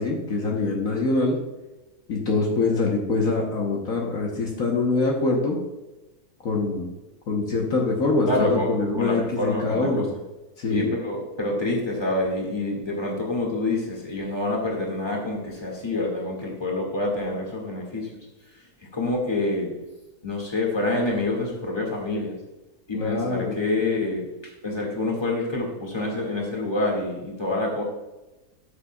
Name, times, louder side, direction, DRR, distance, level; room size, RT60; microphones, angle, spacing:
voice 1, 0.0-1.4 2.1-5.6 6.4-6.9 7.3-10.1 10.6-10.9 22.9-23.5, left 3 dB, 60° left, -1 dB, 1.6 m, -24 dB
voice 2, 8.3-10.0 10.7-18.1 18.9-19.7 20.2-22.4 22.9-27.8, left 2 dB, 15° left, -2 dB, 2.2 m, -27 dB
13.0 x 6.9 x 2.4 m, 1.0 s
omnidirectional pair, 1.6 m